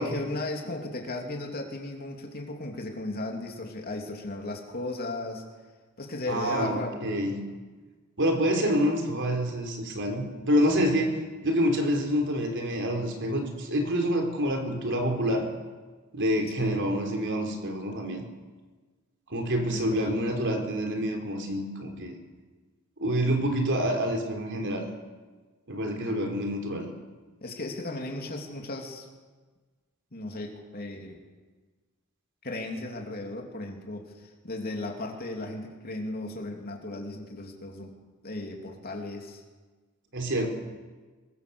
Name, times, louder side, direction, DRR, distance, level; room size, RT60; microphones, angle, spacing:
voice 1, 0.0-5.4 6.0-7.0 16.6-16.7 19.7-20.1 27.4-29.1 30.1-31.2 32.4-37.9 38.2-39.4, left 2 dB, 45° left, 1 dB, 3.2 m, -36 dB
voice 2, 6.3-7.4 8.2-15.5 16.1-18.3 19.3-22.2 23.0-24.8 25.7-26.9 40.1-40.5, equal, 55° right, 4 dB, 4.0 m, -27 dB
24.0 x 22.5 x 7.2 m, 1.4 s
head